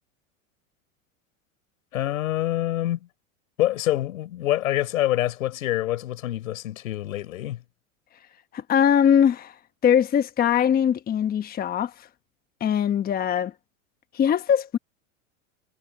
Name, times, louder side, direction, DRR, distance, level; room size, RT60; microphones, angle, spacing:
voice 1, 1.9-3.1 3.6-7.6, left 14 dB, 80° left, 4.6 m, -26 dB
voice 2, 8.5-9.6 9.8-12.1 12.6-13.5 14.1-14.8, left 8 dB, 20° left, 1.1 m, -21 dB
hypercardioid pair, 120°, 40 cm